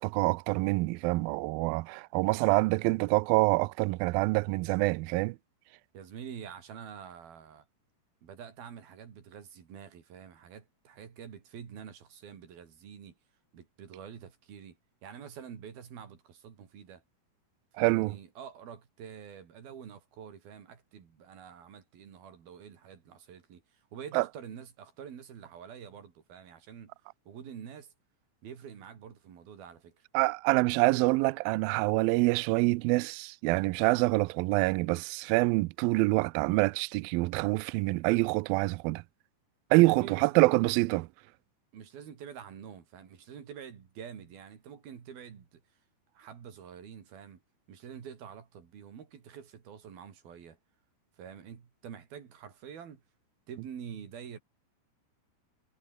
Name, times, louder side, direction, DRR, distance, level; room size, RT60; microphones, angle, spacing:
voice 1, 0.0-5.4 17.8-18.1 24.1-24.2 30.1-39.0 39.7-41.1, right 23 dB, 90° right, 2.1 m, -26 dB
voice 2, 5.9-7.7 8.2-13.2 13.5-17.0 17.7-26.9 27.3-27.9 28.4-30.1 39.8-40.3 41.7-45.6 46.1-47.4 47.7-50.6 51.2-53.0 53.5-54.4, right 8 dB, 60° right, 5.0 m, -47 dB
omnidirectional pair, 4.8 m